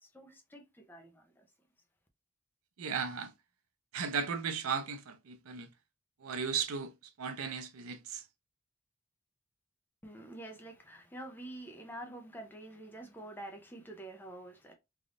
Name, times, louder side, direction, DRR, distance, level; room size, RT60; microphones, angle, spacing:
voice 1, 0.0-1.5 10.0-14.7, right 1 dB, 10° left, 0.4 m, -47 dB
voice 2, 2.8-3.3 3.9-5.7 6.2-6.9 7.2-8.2, right 6 dB, 80° right, 0.5 m, -35 dB
3.4 x 2.5 x 2.4 m
head